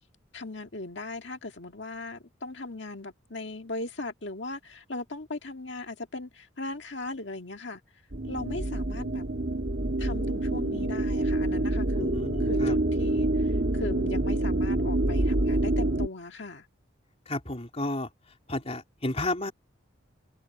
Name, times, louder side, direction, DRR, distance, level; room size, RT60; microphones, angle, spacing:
voice 1, 0.3-7.8 8.3-9.2 10.0-16.7, left 2 dB, 60° left, 2.0 m, -38 dB
sound 1, 8.1-16.1, right 1 dB, 55° right, 1.7 m, -27 dB
voice 2, 12.0-12.8 17.3-18.1 18.5-19.5, left 2 dB, 30° left, 3.7 m, -32 dB
open air
head